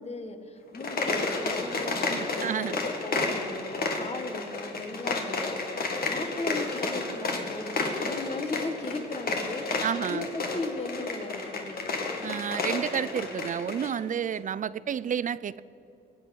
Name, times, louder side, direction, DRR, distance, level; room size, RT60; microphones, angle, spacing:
voice 1, 0.0-11.9, left 3 dB, 30° left, 7 dB, 1.6 m, -37 dB
sound 1, 0.7-13.9, left 3 dB, 50° left, 2.1 m, -31 dB
voice 2, 2.1-2.8 9.8-10.3 12.2-15.6, right 8 dB, 40° right, 18 dB, 0.4 m, -30 dB
22.0 x 8.3 x 6.4 m, 2.8 s
cardioid pair, 90°, 20 cm